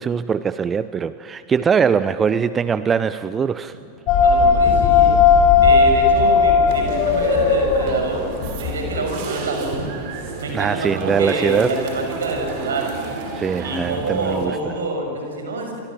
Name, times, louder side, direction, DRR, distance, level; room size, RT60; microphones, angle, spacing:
voice 1, 0.0-3.7 10.5-11.8 13.3-14.7, right 6 dB, 20° right, 14 dB, 0.6 m, -21 dB
sound 1, 4.1-9.0, left 5 dB, 40° left, 5.1 m, -16 dB
voice 2, 4.2-5.2 5.6-8.3 8.6-9.8 10.4-12.9 13.6-15.8, right 2 dB, 65° right, 3 dB, 6.9 m, -26 dB
sound 2, 6.7-14.5, right 3 dB, 45° right, 5.0 m, -32 dB
29.5 x 24.0 x 7.6 m, 2.6 s
figure-of-eight pair, 90°, 0 cm